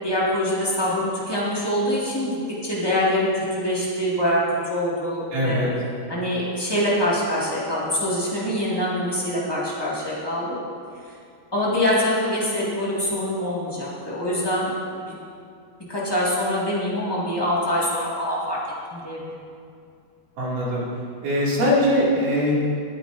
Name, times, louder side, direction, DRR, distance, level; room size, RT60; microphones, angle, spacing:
voice 1, 0.0-2.4 2.6-4.4 4.7-5.6 6.1-10.5 11.5-15.1 15.9-18.6 18.9-19.4, left 1 dB, 25° left, -8 dB, 0.5 m, -24 dB
voice 2, 5.3-5.7 20.4-20.8 21.2-22.5, equal, 60° right, -6 dB, 3.9 m, -21 dB
20.0 x 9.7 x 2.6 m, 2.4 s
omnidirectional pair, 4.4 m